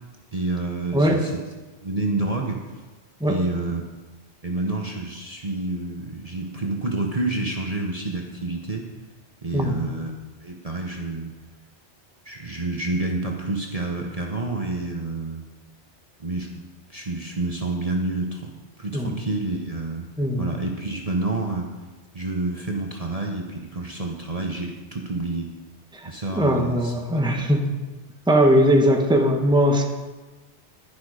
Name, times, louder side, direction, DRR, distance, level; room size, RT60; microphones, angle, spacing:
voice 1, 0.3-1.4 1.8-2.6 3.2-3.8 4.4-8.9 9.4-10.1 10.4-11.4 12.2-15.4 16.2-20.1 20.4-21.7 22.1-25.5 26.0-26.9 27.4-27.5, right 2 dB, 35° right, 0 dB, 1.1 m, -28 dB
voice 2, 0.9-1.3 3.2-3.4 9.5-9.8 18.9-19.2 20.2-20.5 25.9-27.7 28.3-29.9, equal, 5° right, 2 dB, 1.2 m, -20 dB
12.0 x 10.5 x 4.9 m, 1.2 s
omnidirectional pair, 1.2 m